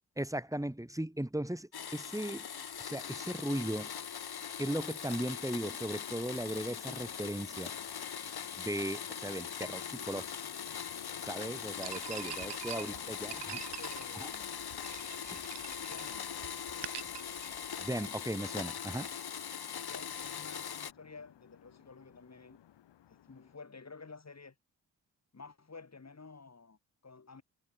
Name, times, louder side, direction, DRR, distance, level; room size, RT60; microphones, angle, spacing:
voice 1, 0.2-2.5 2.8-3.9 4.6-7.7 8.6-10.3 11.2-13.6 14.1-14.3 15.3-15.4 17.8-19.1, right 1 dB, 5° right, 4.1 m, -37 dB
Domestic sounds home sounds, 1.7-20.9, left 8 dB, 60° left, 3.5 m, -41 dB
sound 1, 5.8-23.6, left 11 dB, 75° left, 6.0 m, -58 dB
sound 2, 11.8-18.1, right 10 dB, 70° right, 3.3 m, -46 dB
voice 2, 12.7-14.5 15.8-16.3 19.9-22.6 23.1-24.5 25.3-27.4, left 4 dB, 35° left, 6.8 m, -52 dB
supercardioid pair, 50°, 43 cm